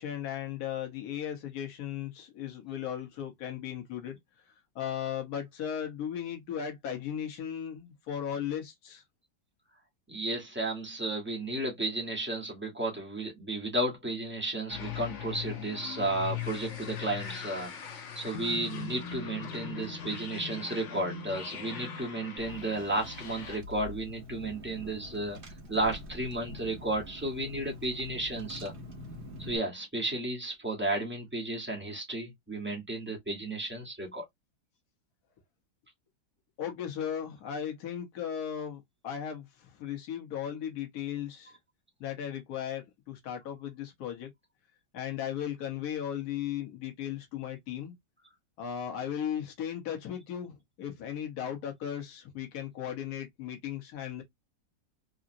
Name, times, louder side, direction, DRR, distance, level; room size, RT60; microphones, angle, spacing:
voice 1, 0.0-4.2 4.7-9.0 36.6-41.5 42.0-44.3 44.9-47.9 48.6-54.2, left 9 dB, 60° left, 1.4 m, -36 dB
voice 2, 10.1-25.4 25.7-28.7 29.4-34.2, right 1 dB, 10° right, 0.6 m, -33 dB
sound 1, 14.7-23.6, left 7 dB, 80° left, 0.6 m, -40 dB
Car / Engine, 22.4-29.6, left 2 dB, 60° right, 0.5 m, -45 dB
3.8 x 2.1 x 2.5 m
omnidirectional pair, 2.1 m